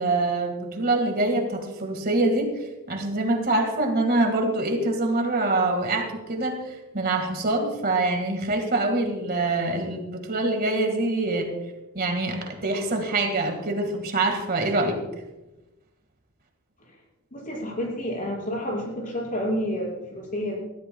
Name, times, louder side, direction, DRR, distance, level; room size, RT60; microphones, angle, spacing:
voice 1, 0.0-2.5 2.9-6.6 6.9-11.5 12.0-15.0, right 2 dB, 45° right, 4 dB, 1.8 m, -25 dB
voice 2, 17.3-20.6, equal, 40° left, -4 dB, 5.6 m, -29 dB
20.5 x 14.0 x 2.3 m, 1.0 s
head